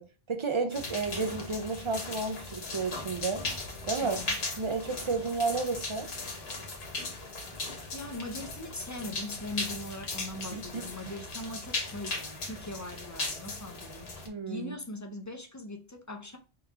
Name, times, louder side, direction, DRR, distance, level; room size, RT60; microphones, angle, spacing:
voice 1, 0.0-3.5 3.9-4.3 4.6-6.1 10.5-10.8 14.3-14.7, right 4 dB, 50° right, 0.3 m, -32 dB
sound 1, 0.7-14.3, left 3 dB, 75° left, 1.2 m, -38 dB
voice 2, 4.0-4.4 7.9-16.4, left 2 dB, 25° left, 0.4 m, -41 dB
3.6 x 2.9 x 3.5 m
omnidirectional pair, 1.1 m